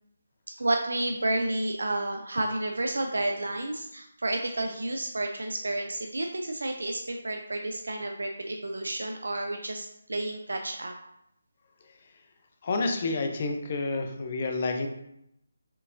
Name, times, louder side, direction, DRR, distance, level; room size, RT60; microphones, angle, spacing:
voice 1, 0.6-10.9, right 2 dB, 75° right, 3 dB, 0.4 m, -31 dB
sound 1, 2.9-3.8, right 1 dB, 30° right, 1.2 m, -52 dB
voice 2, 11.8-12.2 12.6-14.9, left 3 dB, 40° left, 5 dB, 0.6 m, -30 dB
4.5 x 3.4 x 2.5 m, 0.79 s
figure-of-eight pair, 155°, 0 cm